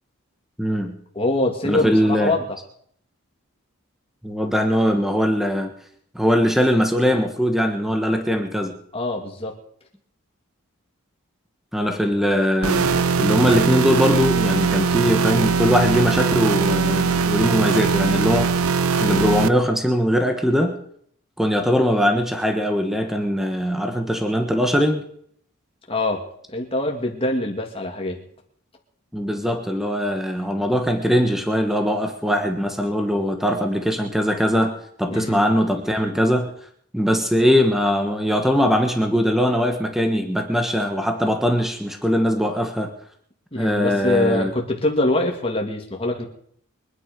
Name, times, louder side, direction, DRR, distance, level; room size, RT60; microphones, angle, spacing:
voice 1, 0.6-1.0 1.6-2.4 4.2-5.7 6.1-8.8 11.7-18.5 19.0-20.8 21.4-25.0 29.1-36.5 36.9-42.9 43.6-44.5, equal, ahead, 5 dB, 1.3 m, -21 dB
voice 2, 1.1-2.6 8.9-9.5 25.9-26.2 26.5-28.2 35.1-35.5 43.5-46.3, left 2 dB, 25° left, 1 dB, 2.5 m, -24 dB
sound 1, 12.6-19.5, right 5 dB, 75° right, 0.7 m, -21 dB
24.0 x 9.7 x 5.3 m, 0.64 s
head